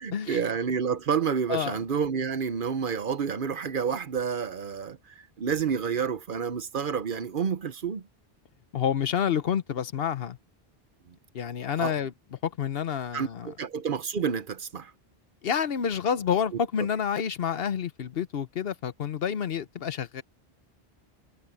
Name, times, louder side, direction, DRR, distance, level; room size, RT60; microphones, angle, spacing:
voice 1, 0.0-8.1 11.1-11.2 11.8-12.1 13.1-14.9 16.5-16.6, right 6 dB, 55° right, 1.0 m, -29 dB
voice 2, 8.7-10.4 11.3-12.1 12.4-13.5 15.4-20.2, left 8 dB, 70° left, 1.0 m, -28 dB
omnidirectional pair, 1.0 m